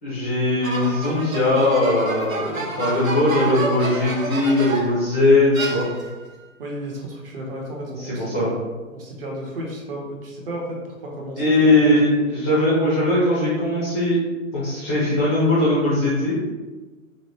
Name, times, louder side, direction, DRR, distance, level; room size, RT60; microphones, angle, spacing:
voice 1, 0.0-5.9 8.0-8.5 11.4-14.2 14.5-16.4, left 2 dB, 10° left, -9 dB, 0.4 m, -20 dB
sound 1, 0.6-5.0 5.5-6.3, right 2 dB, 70° right, 0.9 m, -29 dB
voice 2, 6.6-8.5 8.9-11.4 11.8-12.5, right 1 dB, 40° right, -2 dB, 0.9 m, -33 dB
4.9 x 2.1 x 2.8 m, 1.3 s
figure-of-eight pair, 125°, 41 cm